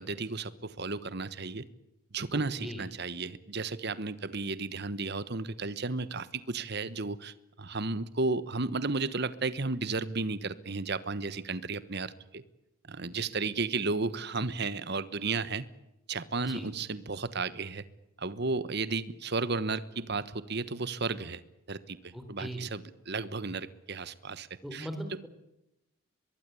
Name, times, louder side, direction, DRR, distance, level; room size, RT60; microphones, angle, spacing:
voice 1, 0.0-1.7 2.1-12.4 12.9-15.7 16.1-17.8 18.2-21.4 21.7-22.8 23.1-24.9, right 3 dB, 50° right, 15 dB, 1.2 m, -33 dB
voice 2, 2.3-2.8 13.1-13.5 16.4-16.7 22.1-22.7 24.6-25.3, equal, ahead, 6 dB, 4.2 m, -40 dB
23.5 x 21.5 x 8.4 m, 0.89 s
head